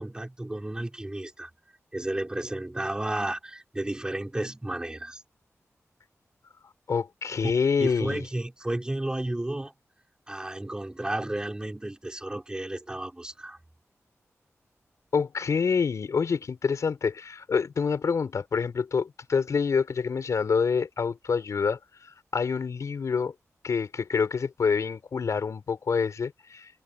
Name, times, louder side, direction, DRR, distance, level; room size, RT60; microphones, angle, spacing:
voice 1, 0.0-1.5 1.9-5.2 7.8-9.7 10.3-13.6, right 1 dB, 15° right, 4.6 m, -32 dB
voice 2, 6.9-8.2 15.1-21.8 22.3-23.3 23.6-26.7, left 5 dB, 80° left, 5.4 m, -27 dB
wide cardioid pair, 125°, 5 cm